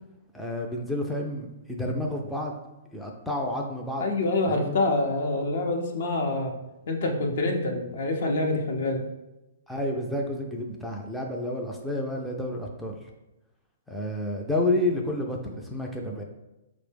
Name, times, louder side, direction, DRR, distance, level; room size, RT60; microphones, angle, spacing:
voice 1, 0.3-2.5 2.9-4.1 4.5-4.8 9.7-13.0 13.9-16.2, left 1 dB, ahead, -1 dB, 0.4 m, -30 dB
voice 2, 4.0-6.5 6.9-9.0, left 2 dB, 60° left, 2 dB, 0.6 m, -26 dB
4.4 x 2.0 x 3.3 m, 0.97 s
hypercardioid pair, 120°, 0 cm